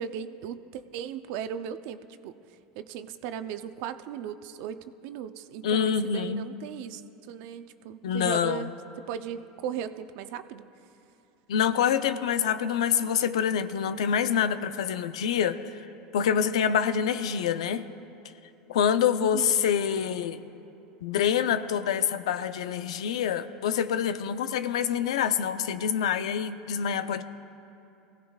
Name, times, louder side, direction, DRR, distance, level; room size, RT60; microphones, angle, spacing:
voice 1, 0.0-2.4 2.7-7.0 7.3-10.7 19.3-19.5, right 8 dB, 65° right, 10 dB, 0.6 m, -37 dB
voice 2, 5.6-6.5 8.0-8.7 11.5-15.9 16.1-17.9 18.7-20.4 21.0-27.2, left 8 dB, 85° left, 11 dB, 0.5 m, -26 dB
23.0 x 16.5 x 2.4 m, 2.8 s
supercardioid pair, 110°, 3 cm